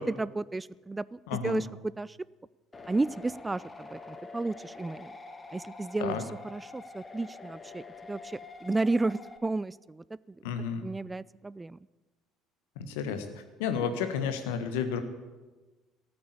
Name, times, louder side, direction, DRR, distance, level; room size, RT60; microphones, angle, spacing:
voice 1, 0.0-2.2 2.9-5.1 5.5-6.2 6.4-10.4 10.8-11.8, right 2 dB, 20° right, 21 dB, 0.3 m, -33 dB
voice 2, 1.3-1.6 6.0-6.2 10.4-10.9 12.8-15.0, left 7 dB, 80° left, 9 dB, 1.4 m, -32 dB
sound 1, 2.7-9.4, left 3 dB, 25° left, 1.7 m, -46 dB
14.0 x 8.8 x 8.3 m, 1.2 s
hypercardioid pair, 65°, 0 cm